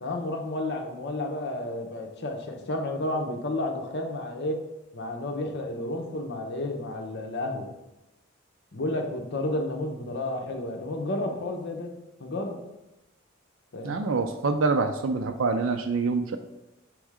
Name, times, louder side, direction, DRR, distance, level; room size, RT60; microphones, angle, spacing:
voice 1, 0.0-4.6 4.9-7.7 8.7-11.9 12.2-12.6 13.7-14.0, left 1 dB, 60° left, 3 dB, 0.9 m, -31 dB
voice 2, 13.8-16.4, right 4 dB, 75° right, 6 dB, 0.5 m, -26 dB
6.2 x 3.5 x 4.8 m, 0.97 s
head